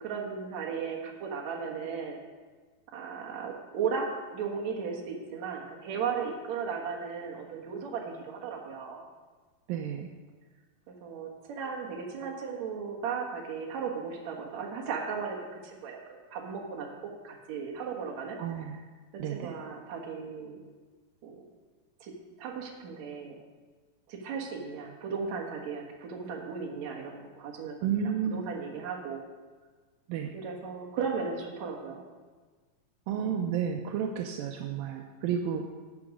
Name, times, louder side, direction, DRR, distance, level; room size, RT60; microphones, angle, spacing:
voice 1, 0.0-2.2 2.9-9.0 10.9-16.9 17.2-18.7 19.3-20.6 21.2-21.4 22.0-23.4 24.1-27.8 28.0-29.2 30.3-32.0, right 6 dB, 55° right, 0 dB, 2.5 m, -36 dB
voice 2, 9.7-10.1 18.4-18.8 19.2-19.5 27.8-28.4 30.1-30.3 33.1-35.7, right 8 dB, 80° right, 3 dB, 2.4 m, -31 dB
12.0 x 8.5 x 5.1 m, 1.4 s
omnidirectional pair, 4.2 m